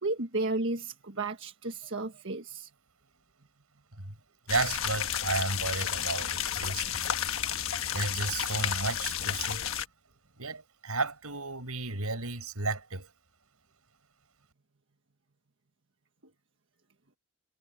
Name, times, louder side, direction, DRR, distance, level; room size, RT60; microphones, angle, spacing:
voice 1, 0.0-2.7, right 2 dB, 55° right, 1.6 m, -33 dB
sound 1, 4.5-9.9, left 9 dB, 65° left, 1.4 m, -32 dB
voice 2, 4.5-7.1 7.9-9.6 10.4-13.1, right 3 dB, 80° right, 5.8 m, -33 dB
head